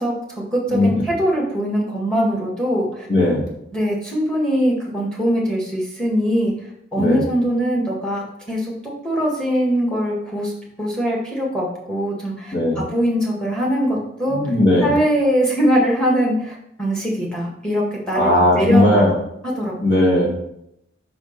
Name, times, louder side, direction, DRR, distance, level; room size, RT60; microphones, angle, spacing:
voice 1, 0.0-3.1 3.7-6.5 6.9-8.7 9.0-10.5 10.8-14.4 14.8-19.0 19.4-19.8, equal, 5° left, -3 dB, 1.7 m, -22 dB
voice 2, 0.7-1.0 3.1-3.4 7.0-7.2 12.5-12.8 14.3-14.9 18.1-19.1 19.8-20.3, left 1 dB, 50° left, -4 dB, 2.2 m, -17 dB
6.0 x 5.1 x 5.2 m, 0.78 s
head